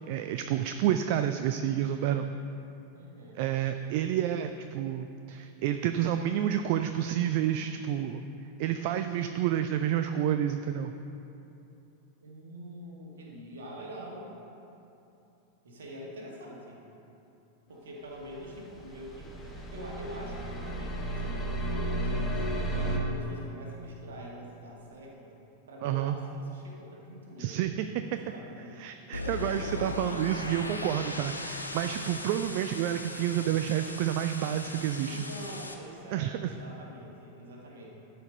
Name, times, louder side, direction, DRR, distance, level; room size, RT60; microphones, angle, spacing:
voice 1, 0.1-2.3 3.3-8.2 8.6-10.9 25.8-26.2 27.4-28.2 28.8-35.2 36.1-36.5, right 10 dB, 45° right, 8 dB, 0.3 m, -29 dB
voice 2, 2.9-3.4 12.2-14.3 15.6-16.8 17.7-25.3 25.7-27.6 28.2-28.7 35.0-37.9, equal, 65° right, -2 dB, 1.8 m, -45 dB
sound 1, 18.2-23.0, right 1 dB, 10° left, 1.3 m, -33 dB
sound 2, 29.1-35.7, left 2 dB, 85° left, 0.6 m, -38 dB
12.0 x 5.0 x 5.3 m, 2.9 s
figure-of-eight pair, 90°, 0 cm